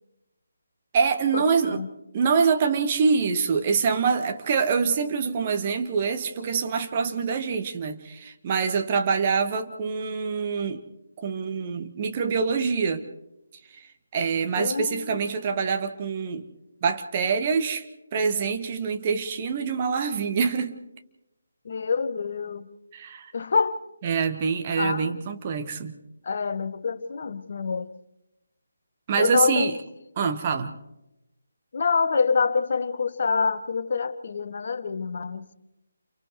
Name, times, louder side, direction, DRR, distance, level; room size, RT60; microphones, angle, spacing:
voice 1, 0.9-1.8 2.1-10.8 11.2-13.1 13.8-13.9 14.1-16.5 16.8-17.8 18.1-20.8 22.9-23.3 24.0-26.0 29.1-29.8 30.2-30.7, right 5 dB, 30° right, 1.3 m, -25 dB
voice 2, 14.6-15.2 21.6-22.7 23.3-23.8 24.8-25.2 26.2-27.9 29.2-29.7 31.7-35.4, left 5 dB, 45° left, 1.1 m, -26 dB
29.5 x 29.5 x 3.2 m
figure-of-eight pair, 150°, 0 cm